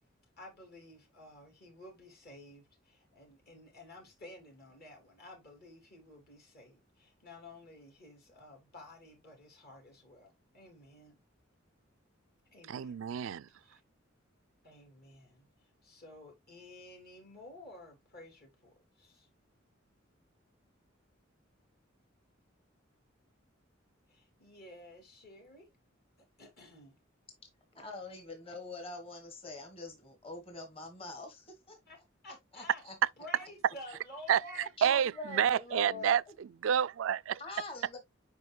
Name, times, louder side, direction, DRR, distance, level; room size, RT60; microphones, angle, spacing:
voice 1, 0.4-11.2 12.5-13.1 13.6-13.8 14.6-19.3 24.1-25.7 26.4-27.0 31.9-32.0 32.2-32.8 33.2-35.0, left 1 dB, 50° left, 3.2 m, -52 dB
voice 2, 12.7-13.5 34.3-34.4 34.8-36.2 36.6-37.4, right 8 dB, 80° right, 0.4 m, -28 dB
voice 3, 27.7-31.8 32.5-33.0 34.8-36.4 37.4-38.0, left 3 dB, 30° left, 1.7 m, -44 dB
9.4 x 5.0 x 2.3 m
head